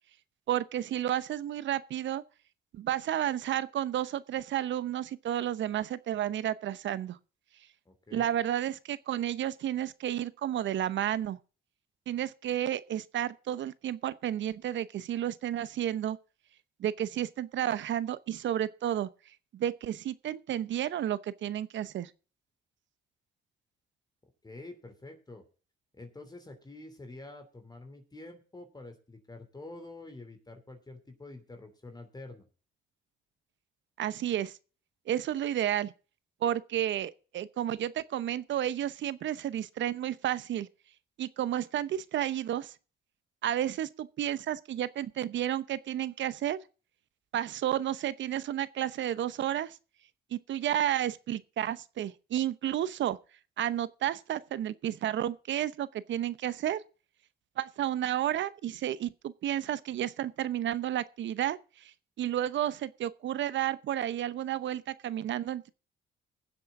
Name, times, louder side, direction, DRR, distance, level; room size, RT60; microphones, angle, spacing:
voice 1, 0.5-2.2 2.7-7.2 8.1-11.4 12.1-16.2 16.8-19.1 19.5-22.1 34.0-34.6 35.1-35.9 36.4-40.7 41.2-42.7 43.4-46.6 47.3-49.8 50.3-53.2 53.6-56.8 57.6-61.6 62.2-65.7, right 11 dB, 70° right, 0.8 m, -31 dB
voice 2, 7.8-8.3 24.4-25.4 25.9-32.5, left 2 dB, 20° left, 3.1 m, -47 dB
20.0 x 7.7 x 3.8 m
cardioid pair, 90°, 20 cm